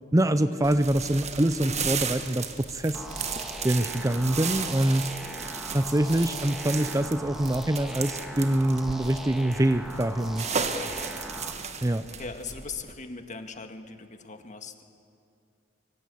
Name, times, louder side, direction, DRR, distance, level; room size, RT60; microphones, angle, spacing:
voice 1, 0.1-2.5 2.7-3.0 3.6-5.1 5.7-10.5 11.8-12.0, right 1 dB, 15° right, 11 dB, 0.6 m, -25 dB
sound 1, 0.6-12.9, right 6 dB, 35° right, 1.5 m, -35 dB
sound 2, 2.9-11.5, equal, ahead, 2.5 m, -40 dB
voice 2, 12.1-14.8, left 4 dB, 40° left, 6 dB, 1.9 m, -40 dB
25.0 x 24.5 x 8.5 m, 2.5 s
head